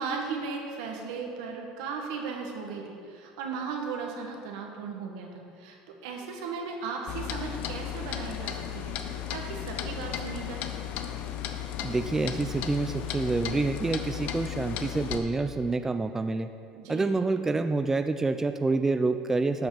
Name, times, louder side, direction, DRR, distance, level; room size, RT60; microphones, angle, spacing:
voice 1, 0.0-10.7 16.7-17.2, right 5 dB, 80° right, 1 dB, 1.6 m, -36 dB
Clock, 7.1-15.2, left 10 dB, 60° left, 0.7 m, -35 dB
voice 2, 11.8-16.5 16.9-19.7, right 3 dB, 15° right, 9 dB, 0.4 m, -27 dB
12.0 x 5.6 x 5.0 m, 2.4 s
supercardioid pair, 105°, 3 cm